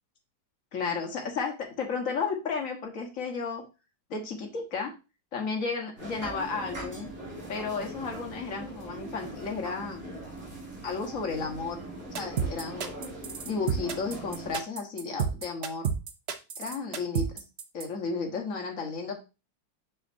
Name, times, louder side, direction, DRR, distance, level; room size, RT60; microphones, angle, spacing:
voice 1, 0.7-3.6 4.1-4.9 5.3-7.1 7.5-10.1 10.8-11.8 12.1-12.9 13.4-15.9 16.6-17.3 17.7-19.1, left 4 dB, 50° left, 1 dB, 1.6 m, -33 dB
sound 1, 6.0-14.6, right 1 dB, 50° right, 2.6 m, -41 dB
sound 2, 12.1-17.9, right 7 dB, 70° right, 0.6 m, -30 dB
6.4 x 6.2 x 2.6 m, 0.29 s
omnidirectional pair, 2.0 m